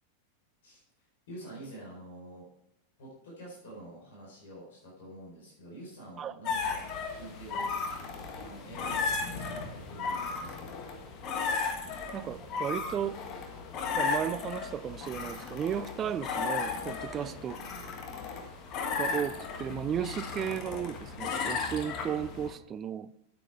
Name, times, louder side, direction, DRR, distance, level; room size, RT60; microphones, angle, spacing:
voice 1, 1.3-2.5 3.0-6.8 7.1-10.7 17.1-17.3, right 1 dB, 60° left, 4.4 m, -47 dB
sound 1, 6.5-22.5, left 5 dB, 35° left, 1.5 m, -35 dB
voice 2, 12.1-13.2 13.9-17.5 19.0-23.1, right 9 dB, 25° right, 0.4 m, -34 dB
8.9 x 8.8 x 4.6 m
figure-of-eight pair, 90°, 0 cm